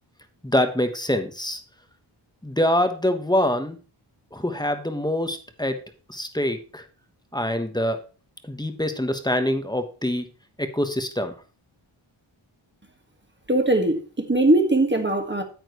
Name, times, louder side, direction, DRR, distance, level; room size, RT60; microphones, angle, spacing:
voice 1, 0.4-1.6 2.4-3.8 4.3-5.8 6.1-6.8 7.3-8.0 8.4-10.3 10.6-11.3, left 1 dB, 10° left, 1.2 m, -25 dB
voice 2, 13.5-15.4, right 2 dB, 20° right, 1.6 m, -20 dB
9.3 x 9.0 x 3.1 m
wide cardioid pair, 75°, 49 cm